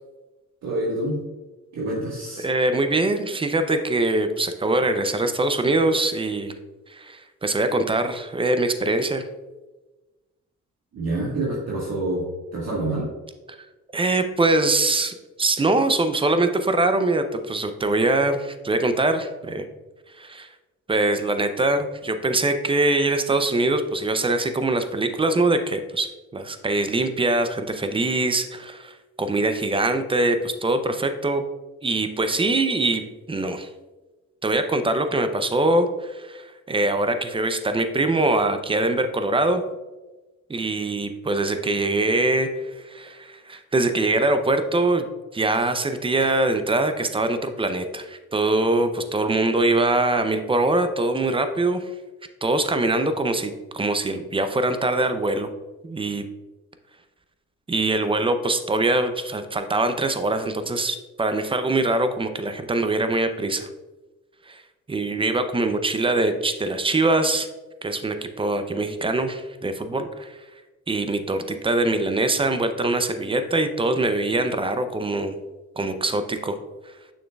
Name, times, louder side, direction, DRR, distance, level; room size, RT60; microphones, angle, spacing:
voice 1, 0.6-1.2 1.7-2.4 10.9-12.2 12.5-13.1, right 1 dB, 60° right, -6 dB, 1.6 m, -27 dB
voice 2, 2.4-6.5 6.9-9.2 13.5-13.6 13.9-19.7 20.2-20.5 20.9-31.4 31.8-33.0 33.3-33.7 34.4-39.6 40.5-45.1 45.3-51.9 52.4-55.5 55.8-56.2 57.7-63.7 64.5-64.6 64.9-67.5 67.8-70.4 70.9-75.3 75.8-76.6, right 2 dB, 20° right, 9 dB, 0.5 m, -23 dB
6.4 x 6.4 x 2.3 m, 1.2 s
cardioid pair, 90°, 30 cm